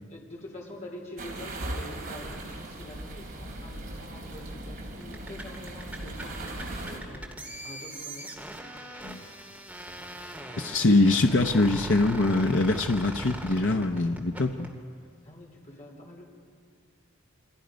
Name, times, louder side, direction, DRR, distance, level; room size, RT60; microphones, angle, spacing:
voice 1, 0.1-8.4 15.2-16.2, left 1 dB, 35° left, -1 dB, 3.7 m, -45 dB
sound 1, 1.2-7.0, right 1 dB, 45° right, 3.6 m, -38 dB
sound 2, 5.0-14.7, right 1 dB, 5° right, 2.1 m, -40 dB
voice 2, 10.6-14.7, left 2 dB, 60° left, 4 dB, 0.8 m, -23 dB
29.0 x 24.0 x 5.2 m, 2.2 s
head